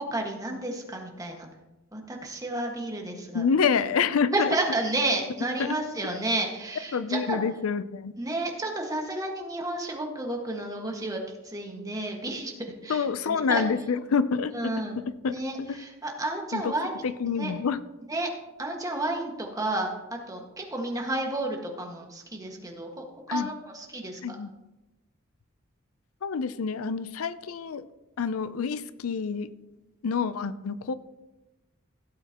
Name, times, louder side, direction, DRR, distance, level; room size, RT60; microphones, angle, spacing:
voice 1, 0.1-1.5 1.9-3.5 4.3-7.4 8.2-13.6 14.5-15.0 15.3-16.9 17.2-17.5 18.1-18.3 18.6-24.4, right 2 dB, 15° right, 1 dB, 1.6 m, -31 dB
voice 2, 3.3-4.5 5.6-5.7 6.9-8.1 12.9-14.5 15.2-15.8 16.5-16.7 17.0-17.8 23.3-23.5 24.2-24.5 26.2-27.8 28.2-29.5 30.0-30.9, left 5 dB, 85° left, 14 dB, 0.5 m, -27 dB
16.0 x 8.1 x 3.0 m, 1.0 s
head